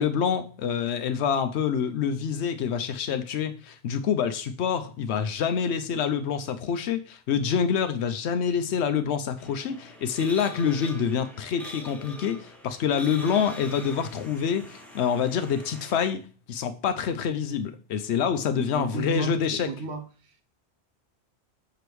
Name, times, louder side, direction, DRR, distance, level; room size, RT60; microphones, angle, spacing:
voice 1, 0.0-19.7, left 7 dB, 70° left, 0.9 m, -27 dB
sound 1, 9.4-16.1, left 1 dB, ahead, 0.9 m, -44 dB
voice 2, 18.7-19.4 19.7-20.0, right 5 dB, 70° right, 1.0 m, -32 dB
6.8 x 5.0 x 3.1 m
omnidirectional pair, 1.2 m